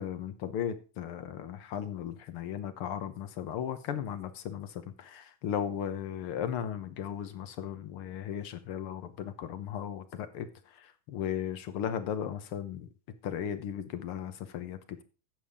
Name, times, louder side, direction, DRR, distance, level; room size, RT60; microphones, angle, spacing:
voice 1, 0.0-12.9 13.2-15.0, left 9 dB, 65° left, 12 dB, 1.4 m, -36 dB
13.0 x 8.5 x 3.6 m, 0.35 s
omnidirectional pair, 3.5 m